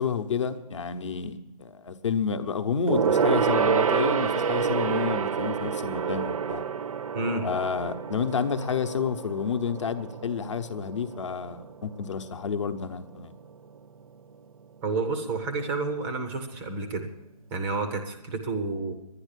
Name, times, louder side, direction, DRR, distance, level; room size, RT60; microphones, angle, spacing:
voice 1, 0.0-6.6 7.4-13.3, left 6 dB, 50° left, 9 dB, 1.0 m, -30 dB
Gong, 2.9-12.6 12.9-13.2 13.5-13.6, right 6 dB, 60° right, 0.6 m, -28 dB
voice 2, 7.1-7.4 14.8-17.1 17.5-18.9, right 3 dB, 10° right, 7 dB, 0.5 m, -30 dB
11.0 x 10.5 x 8.2 m, 0.97 s
hypercardioid pair, 160°, 20 cm